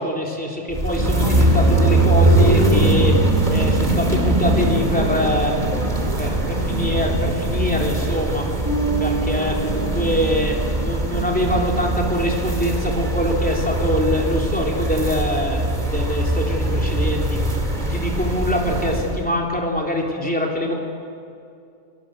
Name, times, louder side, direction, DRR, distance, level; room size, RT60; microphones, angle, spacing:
voice 1, 0.0-3.2 3.5-8.5 9.0-17.4 17.8-20.7, left 1 dB, 5° left, -1 dB, 3.6 m, -24 dB
sound 1, 0.7-19.2, right 2 dB, 30° right, 2.8 m, -21 dB
Bass guitar, 8.7-11.3, right 3 dB, 15° right, 3.2 m, -29 dB
29.0 x 17.5 x 7.9 m, 2.4 s
omnidirectional pair, 1.5 m